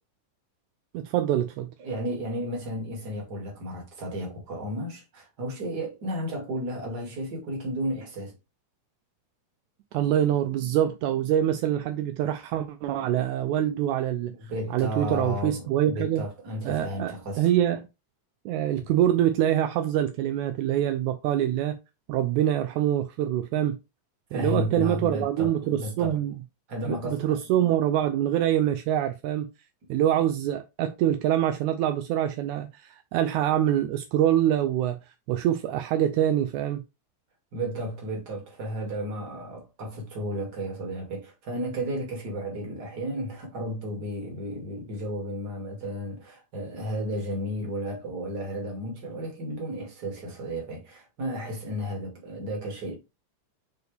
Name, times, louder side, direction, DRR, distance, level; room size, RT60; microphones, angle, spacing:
voice 1, 0.9-1.7 9.9-14.3 14.7-16.2 16.6-17.9 18.5-21.8 22.1-23.8 24.3-26.3 26.9-29.5 29.9-35.0 35.3-36.8, right 11 dB, 80° right, 1.9 m, -25 dB
voice 2, 1.8-8.3 14.3-17.5 24.3-26.2 26.7-27.4 37.5-53.0, equal, 35° right, 2.5 m, -33 dB
6.4 x 4.6 x 3.3 m
omnidirectional pair, 3.6 m